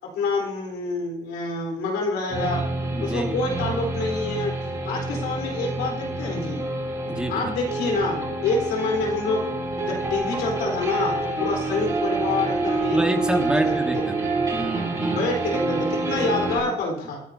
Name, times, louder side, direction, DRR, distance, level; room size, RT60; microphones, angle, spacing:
voice 1, 0.0-2.7 3.0-4.6 4.8-6.7 7.3-9.5 9.8-13.6 13.9-14.2 15.1-17.2, left 3 dB, 80° left, 0 dB, 3.9 m, -27 dB
sound 1, 2.3-16.6, right 2 dB, 20° right, 5.7 m, -27 dB
voice 2, 2.9-3.3 7.1-7.5 12.9-14.2 14.5-15.3, right 1 dB, 5° right, 3 dB, 1.7 m, -27 dB
28.0 x 10.0 x 2.8 m, 0.82 s
cardioid pair, 110°, 17 cm